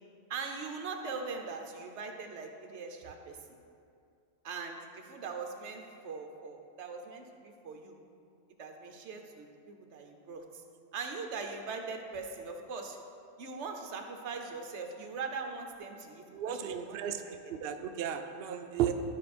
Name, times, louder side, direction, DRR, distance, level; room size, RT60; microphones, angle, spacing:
voice 1, 0.3-3.4 4.4-8.0 8.6-10.6 10.9-13.0 13.4-17.3, right 4 dB, 55° right, 4 dB, 1.0 m, -41 dB
voice 2, 16.3-17.2 17.5-18.9, right 10 dB, 85° right, 6 dB, 0.5 m, -34 dB
12.5 x 4.8 x 4.2 m, 2.4 s
omnidirectional pair, 1.6 m